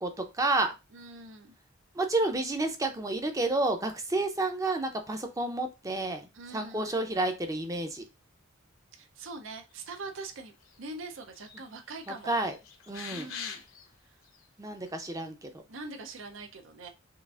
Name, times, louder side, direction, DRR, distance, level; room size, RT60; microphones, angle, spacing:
voice 1, 0.0-0.7 1.9-6.3 6.5-8.0 12.1-12.6 12.9-13.3 14.6-15.6, right 2 dB, 15° right, 6 dB, 0.6 m, -30 dB
voice 2, 0.9-1.5 6.3-7.0 8.9-12.4 13.1-13.6 14.0-14.1 15.7-16.9, right 3 dB, 65° right, 5 dB, 0.6 m, -43 dB
sound 1, 10.3-10.9 11.2-11.6 11.9-13.9 14.4-14.5, left 7 dB, 70° left, 0.8 m, -43 dB
5.7 x 2.5 x 2.4 m, 0.26 s
head